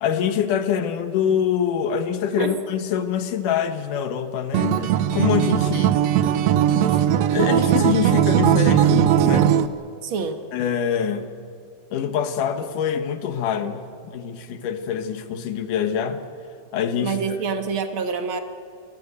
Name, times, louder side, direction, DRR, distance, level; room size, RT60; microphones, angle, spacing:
voice 1, 0.0-6.0 6.9-7.0 7.3-9.6 10.5-11.3 11.9-16.2 16.7-17.2, left 8 dB, 85° left, 9 dB, 2.9 m, -25 dB
Acoustic guitar, 4.5-9.7, right 10 dB, 70° right, 1.8 m, -19 dB
voice 2, 10.0-10.4 17.0-18.4, right 5 dB, 50° right, 7 dB, 1.9 m, -26 dB
27.5 x 18.0 x 8.4 m, 2.5 s
omnidirectional pair, 3.6 m